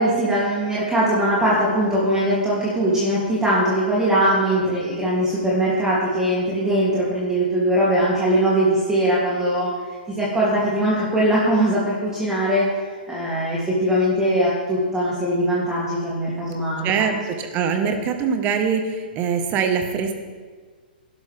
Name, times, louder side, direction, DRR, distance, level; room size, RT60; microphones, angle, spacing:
voice 1, 0.0-9.7 10.1-12.7 13.1-16.9 17.8-18.0, right 1 dB, 10° right, -8 dB, 3.2 m, -21 dB
voice 2, 16.8-20.1, right 6 dB, 30° right, 6 dB, 1.5 m, -23 dB
19.0 x 11.5 x 3.7 m, 1.5 s
figure-of-eight pair, 115°, 5 cm